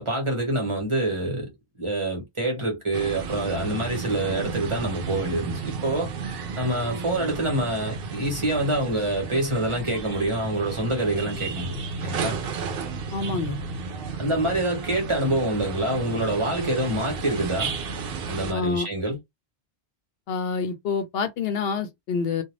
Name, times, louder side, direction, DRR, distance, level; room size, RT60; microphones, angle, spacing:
voice 1, 0.0-1.5 1.8-6.1 6.6-12.4 14.2-17.8 18.3-19.2, right 1 dB, 30° right, 1.1 m, -26 dB
sound 1, 2.9-18.5, right 5 dB, 65° right, 0.7 m, -33 dB
voice 2, 13.1-13.6 18.5-18.9 20.3-22.4, left 5 dB, 70° left, 0.8 m, -27 dB
2.4 x 2.3 x 3.1 m
omnidirectional pair, 1.1 m